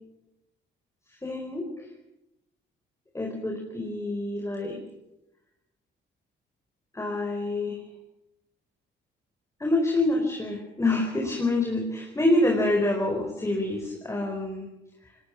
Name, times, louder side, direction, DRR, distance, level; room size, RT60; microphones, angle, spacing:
voice 1, 1.2-1.9 3.1-4.7 6.9-7.8 9.6-14.7, left 2 dB, 15° left, 1 dB, 4.5 m, -26 dB
20.5 x 19.5 x 7.2 m, 0.91 s
cardioid pair, 90°, 20 cm